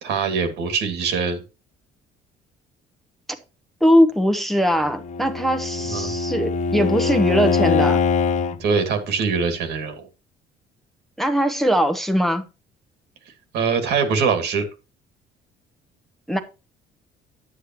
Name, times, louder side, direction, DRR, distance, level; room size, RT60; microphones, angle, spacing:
voice 1, 0.0-1.4 5.8-6.1 8.6-10.0 13.5-14.7, right 5 dB, 80° right, 2.3 m, -23 dB
voice 2, 3.8-8.0 11.2-12.4 16.3-16.4, equal, ahead, 1.0 m, -20 dB
Bowed string instrument, 4.9-8.6, left 5 dB, 45° left, 0.6 m, -22 dB
9.8 x 8.4 x 3.0 m
cardioid pair, 110°, 17 cm